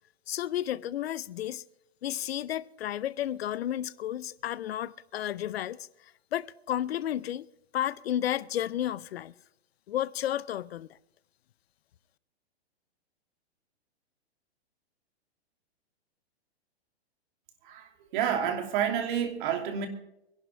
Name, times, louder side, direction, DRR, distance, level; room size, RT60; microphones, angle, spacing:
voice 1, 0.3-1.6 2.0-5.9 6.3-7.5 7.7-9.3 9.9-10.9, left 11 dB, 65° left, 0.7 m, -32 dB
voice 2, 17.6-19.9, right 8 dB, 50° right, 3.0 m, -29 dB
24.5 x 11.5 x 3.4 m
hypercardioid pair, 120°, 33 cm